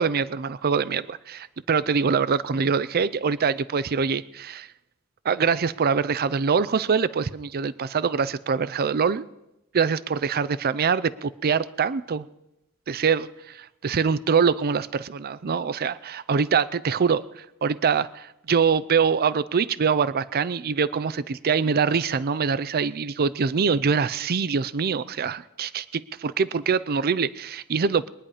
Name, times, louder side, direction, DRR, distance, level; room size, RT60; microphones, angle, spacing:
voice 1, 0.0-4.7 5.2-9.2 9.7-12.3 12.9-17.2 17.6-28.1, right 6 dB, 45° right, 18 dB, 0.5 m, -24 dB
22.5 x 10.0 x 4.9 m, 0.89 s
head